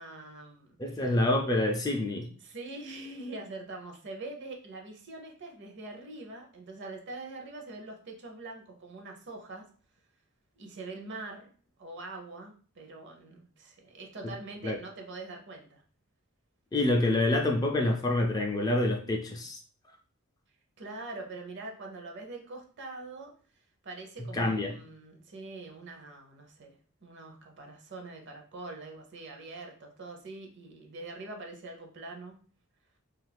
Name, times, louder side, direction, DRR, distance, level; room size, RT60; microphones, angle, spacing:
voice 1, 0.0-1.2 2.4-9.6 10.6-11.5 11.8-15.8 20.8-23.3 23.8-26.7 27.0-32.3, right 2 dB, 55° right, 2 dB, 0.6 m, -43 dB
voice 2, 0.8-2.3 14.6-14.8 16.7-19.6 24.3-24.7, left 2 dB, 20° left, 2 dB, 0.4 m, -27 dB
2.7 x 2.4 x 3.3 m, 0.43 s
head